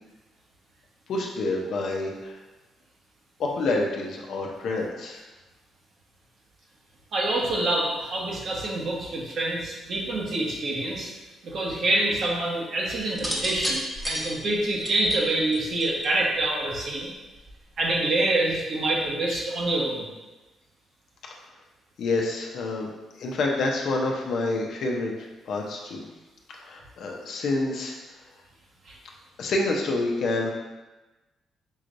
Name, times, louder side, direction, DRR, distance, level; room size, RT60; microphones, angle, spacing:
voice 1, 1.1-2.4 3.4-5.2 22.0-22.9 23.2-26.0 26.6-27.9 29.4-30.5, left 2 dB, 65° left, 0 dB, 0.7 m, -28 dB
voice 2, 7.1-11.1 11.4-17.1 17.8-20.1 28.8-29.0, right 2 dB, 55° right, -3 dB, 1.2 m, -26 dB
sound 1, 13.1-16.2 17.3-17.7, equal, 5° right, 1.0 m, -31 dB
5.5 x 3.1 x 2.6 m, 1.1 s
cardioid pair, 90°, 0 cm